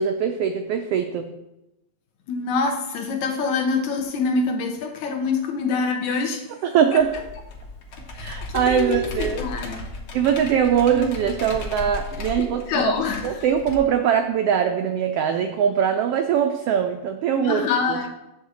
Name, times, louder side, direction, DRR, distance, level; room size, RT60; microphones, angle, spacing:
voice 1, 0.0-1.3 6.6-7.2 8.2-9.4 10.1-12.9 13.2-17.6 17.9-18.1, right 8 dB, 85° right, 5 dB, 1.3 m, -22 dB
voice 2, 2.3-6.5 6.9-7.0 8.1-9.9 12.4-13.4 17.4-18.1, left 4 dB, 80° left, 4 dB, 2.4 m, -25 dB
Computer keyboard, 7.0-13.7, left 2 dB, 55° left, 1.7 m, -35 dB
9.5 x 3.6 x 6.9 m, 0.91 s
omnidirectional pair, 3.3 m